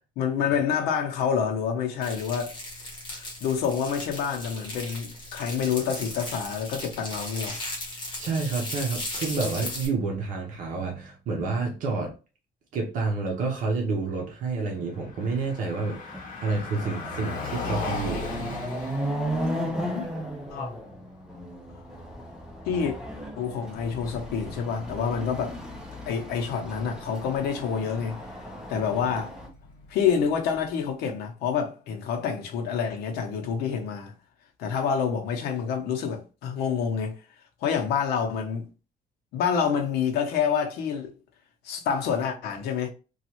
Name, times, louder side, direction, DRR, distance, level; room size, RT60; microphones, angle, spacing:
voice 1, 0.2-2.6 3.1-7.6 19.9-20.1 20.5-20.7 22.7-23.0 23.4-25.6 26.1-28.2 28.7-29.4 29.9-34.1 34.6-37.2 37.6-38.7 39.3-41.1 41.6-42.9, left 7 dB, 85° left, 0.7 m, -27 dB
sound 1, 2.0-9.9, left 1 dB, 30° left, 1.1 m, -37 dB
voice 2, 8.2-12.1 12.7-16.0 16.4-18.7, right 4 dB, 55° right, 0.8 m, -29 dB
Car passing by, 14.8-30.9, left 4 dB, 55° left, 0.9 m, -41 dB
Chatter / Car passing by / Motorcycle, 15.4-15.5 15.9-29.5, equal, 5° right, 0.5 m, -35 dB
3.1 x 2.3 x 2.9 m
cardioid pair, 165°, 16 cm